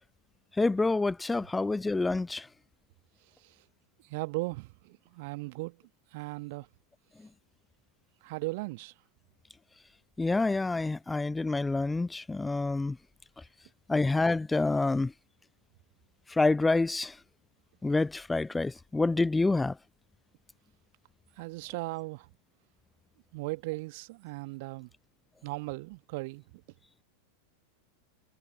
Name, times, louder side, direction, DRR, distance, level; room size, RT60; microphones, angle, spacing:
voice 1, 0.6-2.5 10.2-13.0 13.9-15.1 16.3-17.1 17.8-19.7, left 3 dB, 10° left, 0.5 m, -27 dB
voice 2, 4.1-5.8 6.1-6.7 8.2-8.9 21.4-22.3 23.3-24.9 25.4-26.6, right 24 dB, 50° right, 2.1 m, -37 dB
figure-of-eight pair, 90°, 0 cm